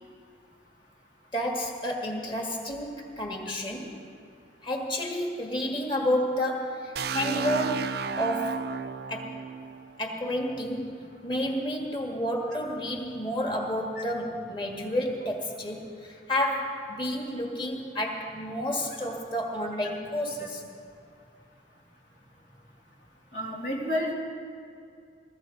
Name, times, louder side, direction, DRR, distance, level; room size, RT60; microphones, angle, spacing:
voice 1, 1.3-4.0 4.6-8.7 9.1-9.4 10.0-20.6, left 1 dB, 30° left, 1 dB, 1.9 m, -30 dB
sound 1, 7.0-10.8, right 6 dB, 60° right, 0.4 m, -33 dB
voice 2, 23.3-24.1, left 1 dB, 80° left, -2 dB, 2.9 m, -30 dB
20.0 x 14.5 x 4.0 m, 2.4 s
head